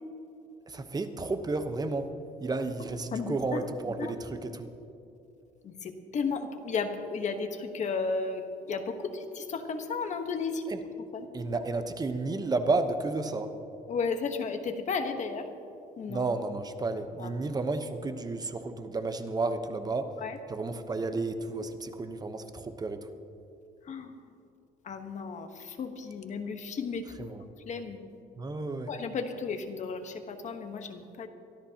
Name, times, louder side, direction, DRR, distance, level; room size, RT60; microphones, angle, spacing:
voice 1, 0.7-2.1 2.4-4.7 10.7-10.8 11.3-13.5 16.1-20.1 20.5-23.1 27.2-27.4 28.4-28.9, right 3 dB, 25° right, 8 dB, 0.9 m, -32 dB
voice 2, 3.1-3.6 4.0-4.1 5.6-10.6 11.1-11.3 13.9-15.5 16.0-16.2 17.2-17.3 20.2-20.4 23.9-24.1 24.8-27.3 27.7-28.0 28.9-31.3, left 5 dB, 45° left, 6 dB, 1.2 m, -34 dB
23.5 x 13.5 x 2.9 m, 2.8 s
cardioid pair, 110°, 17 cm